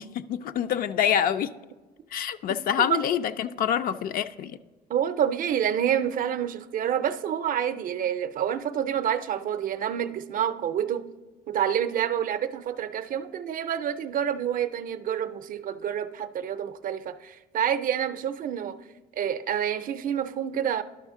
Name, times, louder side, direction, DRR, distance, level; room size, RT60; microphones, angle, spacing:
voice 1, 0.0-1.5 2.1-4.6, left 9 dB, 60° left, 0.4 m, -26 dB
voice 2, 4.9-11.1 11.5-18.8 19.2-20.8, right 9 dB, 55° right, 0.5 m, -28 dB
11.5 x 5.7 x 3.6 m
cardioid pair, 110°, 17 cm